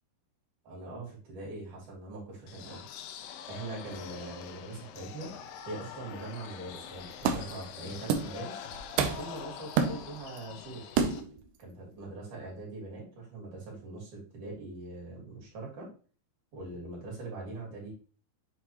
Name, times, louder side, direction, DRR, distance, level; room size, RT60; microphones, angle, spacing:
voice 1, 0.6-2.8 3.4-5.4 5.6-8.6 9.1-10.9 11.6-15.9 16.5-17.9, right 2 dB, 50° right, -4 dB, 4.4 m, -42 dB
sound 1, 2.5-11.2, left 8 dB, 85° left, 2.8 m, -45 dB
sound 2, 6.7-6.8 7.2-7.6 8.1-8.4 8.7-9.4 9.8-10.4 11.0-11.4, right 6 dB, 75° right, 2.0 m, -29 dB
7.9 x 4.6 x 3.0 m, 0.38 s
omnidirectional pair, 4.6 m